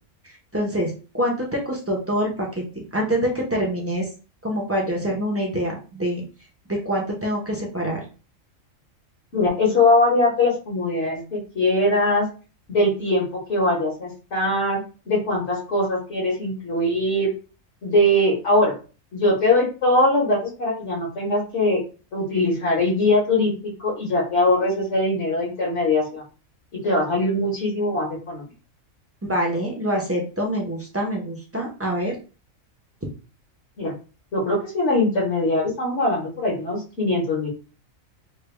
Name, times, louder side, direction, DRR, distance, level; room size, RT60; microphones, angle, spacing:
voice 1, 0.5-4.1 4.4-6.2 6.7-8.0 29.2-32.2, equal, 15° right, -1 dB, 0.5 m, -25 dB
voice 2, 9.3-12.3 12.7-17.3 17.8-18.7 19.1-21.8 22.1-23.5 23.8-26.2 26.8-28.4 33.8-33.9 34.3-37.5, left 1 dB, 60° left, -5 dB, 1.4 m, -21 dB
3.3 x 2.2 x 3.2 m, 0.35 s
omnidirectional pair, 1.4 m